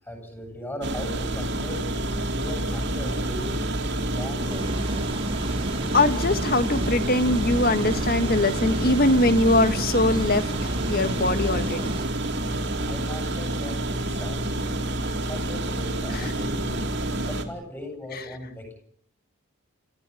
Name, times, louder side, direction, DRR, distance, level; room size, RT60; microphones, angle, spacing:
voice 1, 0.0-3.6 4.0-5.2 12.4-16.9 17.2-18.8, left 1 dB, 10° left, 5 dB, 7.9 m, -38 dB
sound 1, 0.8-17.4, right 1 dB, 55° right, 3.0 m, -28 dB
sound 2, 4.5-12.1, right 1 dB, 25° right, 1.5 m, -32 dB
voice 2, 5.9-12.0 16.1-16.3 18.1-18.2, left 2 dB, 45° left, 11 dB, 1.6 m, -22 dB
29.5 x 15.5 x 8.4 m, 0.65 s
head